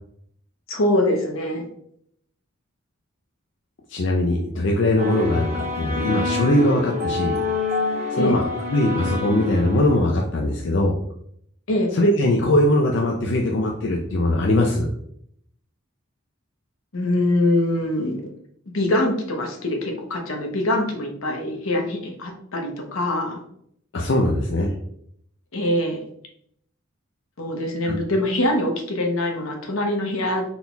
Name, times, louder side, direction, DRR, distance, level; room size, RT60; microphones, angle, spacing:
voice 1, 0.7-1.6 8.2-8.4 11.7-11.9 16.9-18.2 18.7-23.4 25.5-26.0 27.4-30.4, left 1 dB, 80° left, 3 dB, 0.8 m, -23 dB
voice 2, 3.9-7.4 8.1-8.4 8.7-10.9 11.9-14.9 23.9-24.7 27.8-28.0, left 1 dB, 60° left, 0 dB, 0.4 m, -21 dB
sound 1, 5.0-10.2, left 4 dB, 30° right, 0.9 m, -27 dB
4.0 x 3.9 x 2.3 m, 0.69 s
head